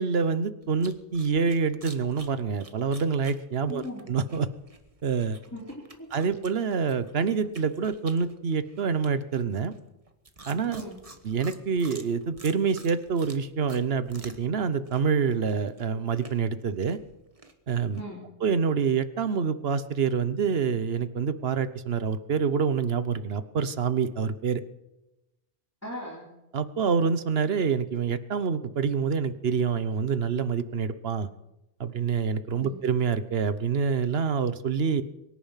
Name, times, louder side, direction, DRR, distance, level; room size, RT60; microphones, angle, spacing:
voice 1, 0.0-4.5 5.0-5.4 6.1-9.7 10.5-10.8 11.2-17.0 17.7-18.0 18.4-24.6 26.5-31.3 31.8-35.0, right 6 dB, 60° right, 13 dB, 1.2 m, -26 dB
sound 1, 0.6-14.6 14.8-18.0, right 3 dB, 30° right, 1.4 m, -50 dB
voice 2, 3.7-4.1 5.5-6.1 10.7-11.0 18.0-18.2 25.8-26.3 32.6-32.8, equal, 15° left, -3 dB, 3.2 m, -38 dB
23.5 x 10.5 x 5.8 m, 0.97 s
omnidirectional pair, 1.2 m